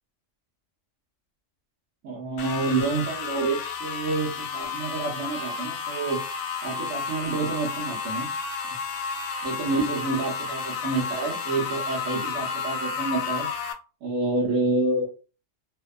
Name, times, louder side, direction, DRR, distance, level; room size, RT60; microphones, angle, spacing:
voice 1, 2.0-6.2 6.6-8.3 9.4-13.5 14.0-15.1, right 3 dB, 85° right, -4 dB, 1.1 m, -28 dB
sound 1, 2.4-13.7, left 5 dB, 65° left, 0.6 m, -32 dB
2.7 x 2.1 x 2.2 m, 0.34 s
omnidirectional pair, 1.3 m